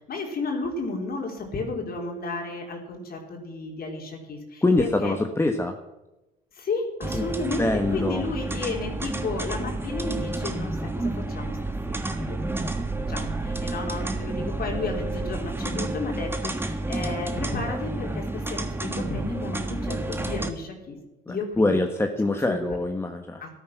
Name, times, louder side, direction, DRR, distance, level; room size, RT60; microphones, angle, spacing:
voice 1, 0.1-4.4 4.8-5.2 6.7-10.7 11.3-11.5 12.2-12.4 13.1-13.3 13.6-16.5 16.9-18.1 18.5-21.0 21.3-21.8 22.5-22.6 23.4-23.5, left 3 dB, 50° left, 1 dB, 3.8 m, -32 dB
voice 2, 4.6-5.7 7.1-8.2 21.3-23.4, left 2 dB, 15° left, 5 dB, 1.3 m, -24 dB
sound 1, 7.0-20.5, right 2 dB, 10° right, 1.6 m, -30 dB
sound 2, 8.6-15.7, right 6 dB, 55° right, 1.3 m, -40 dB
14.0 x 13.0 x 6.0 m, 1.0 s
cardioid pair, 105°, 19 cm